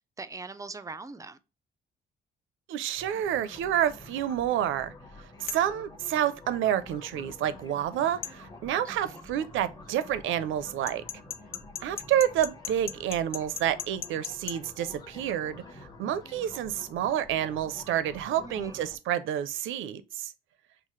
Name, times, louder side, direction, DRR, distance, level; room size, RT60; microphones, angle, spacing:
voice 1, 0.2-1.4 8.8-9.3 18.4-18.8, right 3 dB, 15° right, 0.4 m, -42 dB
voice 2, 2.7-4.9 5.2-11.0 11.8-20.3, right 10 dB, 80° right, 0.5 m, -29 dB
sound 1, 2.9-19.0, left 2 dB, 20° left, 1.0 m, -48 dB
sound 2, 5.5-5.7 8.2-8.4 10.9-14.6, left 9 dB, 50° left, 0.4 m, -37 dB
5.6 x 2.0 x 3.1 m
cardioid pair, 90°, 20 cm